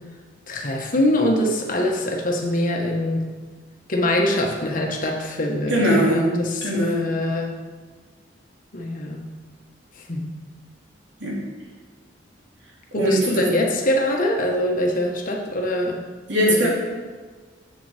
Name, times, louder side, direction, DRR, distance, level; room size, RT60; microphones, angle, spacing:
voice 1, 0.5-3.2 3.9-7.5 8.7-9.2 10.1-10.2 12.9-16.0 16.5-16.7, left 1 dB, 50° left, 1 dB, 1.3 m, -23 dB
voice 2, 5.7-6.3 6.6-7.1 11.2-11.4 13.0-13.4 16.3-16.7, equal, 80° right, -4 dB, 2.7 m, -21 dB
7.4 x 7.0 x 4.9 m, 1.4 s
head